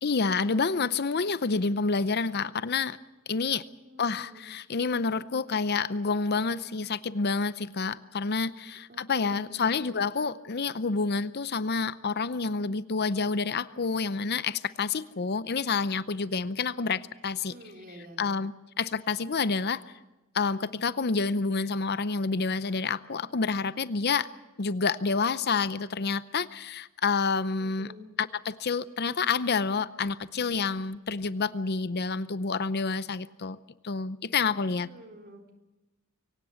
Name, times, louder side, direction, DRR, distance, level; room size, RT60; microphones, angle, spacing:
voice 1, 0.0-3.0 3.3-3.7 4.0-17.5 17.9-19.8 20.3-24.3 24.6-27.9 28.2-33.6 33.8-34.9, left 4 dB, 50° left, 15 dB, 0.7 m, -28 dB
voice 2, 3.8-4.4 8.9-9.6 17.5-18.2 27.6-28.1 34.6-35.5, equal, 45° right, 3 dB, 3.8 m, -49 dB
23.5 x 18.0 x 7.1 m, 1.0 s
head